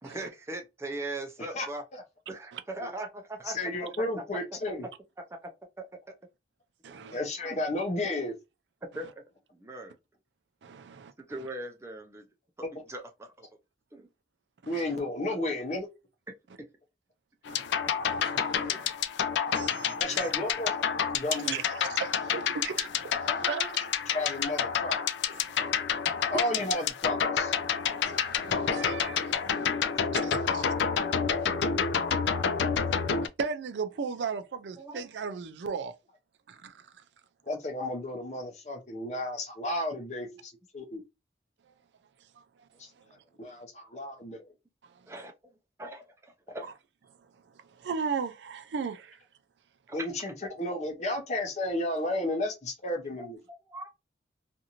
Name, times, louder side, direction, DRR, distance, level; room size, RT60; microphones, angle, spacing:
voice 1, 0.0-1.8 2.3-3.6 5.3-5.5 5.8-6.1 6.9-7.0 7.5-7.6 8.8-10.0 11.2-12.3 12.6-13.5 13.9-14.1 16.6-16.7 18.7-18.8 20.1-20.4 21.4-21.5 23.2-23.8 26.3-26.4 31.4-32.0 32.3-33.3 34.8-35.0 39.0-39.2 40.3-40.4 45.1-45.3 45.8-46.7 49.9-50.1 53.2-53.9, right 2 dB, 15° right, 0.5 m, -41 dB
voice 2, 3.5-4.8 7.1-8.3 14.6-15.9 20.0-20.8 21.1-21.6 24.1-25.0 26.3-27.6 37.5-41.0 42.8-42.9 43.4-44.4 49.9-53.4, left 1 dB, 40° left, 0.7 m, -32 dB
voice 3, 6.8-7.2 10.6-11.1 14.6-14.8 17.5-17.6 18.0-18.9 19.5-20.3 21.4-23.7 25.5-25.7 27.8-29.8 30.1-30.7 31.1-31.5 33.4-35.9 36.6-36.7 47.8-49.2, right 5 dB, 85° right, 0.4 m, -37 dB
sound 1, 17.5-33.3, left 7 dB, 85° left, 0.3 m, -29 dB
2.5 x 2.5 x 2.8 m
head